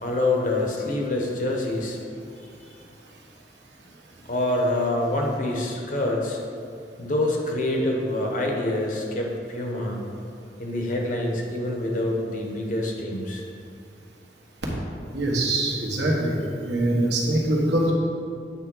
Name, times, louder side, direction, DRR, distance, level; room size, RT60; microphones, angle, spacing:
voice 1, 0.0-2.0 4.3-6.4 7.0-10.0 10.6-13.4, left 1 dB, 45° left, 0 dB, 1.0 m, -26 dB
voice 2, 15.1-16.4 16.6-17.9, right 1 dB, 75° right, -2 dB, 1.4 m, -23 dB
8.4 x 3.4 x 6.1 m, 2.4 s
head